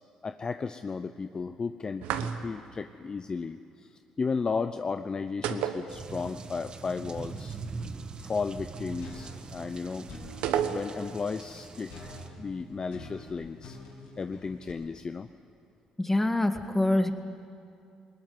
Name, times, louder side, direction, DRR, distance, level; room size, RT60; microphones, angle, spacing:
voice 1, 0.2-3.9 4.2-7.6 8.2-10.1 10.7-13.8 14.2-15.3, left 4 dB, 35° left, 10 dB, 0.7 m, -34 dB
sound 1, 2.0-2.7 5.4-6.5 6.7-6.8 10.4-11.2, right 9 dB, 80° right, 1.2 m, -31 dB
sound 2, 5.9-12.3, right 4 dB, 40° right, 1.4 m, -42 dB
sound 3, 9.0-10.6 11.9-14.7, left 2 dB, 85° left, 6.4 m, -46 dB
voice 2, 16.0-17.1, left 1 dB, 10° left, 7 dB, 2.0 m, -25 dB
20.5 x 19.5 x 9.5 m, 2.5 s
supercardioid pair, 65°, 2 cm